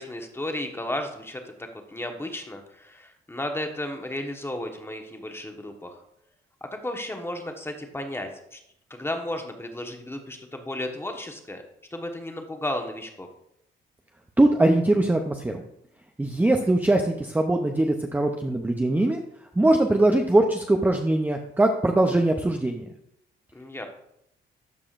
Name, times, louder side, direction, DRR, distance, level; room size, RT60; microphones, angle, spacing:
voice 1, 0.0-6.0 6.6-8.6 8.9-11.6 11.9-13.3 23.5-23.9, left 1 dB, 10° left, 4 dB, 1.2 m, -34 dB
voice 2, 14.4-15.6 16.2-19.2 19.6-22.9, right 2 dB, 10° right, 3 dB, 0.6 m, -21 dB
13.0 x 4.9 x 2.5 m, 0.77 s
cardioid pair, 90°, 20 cm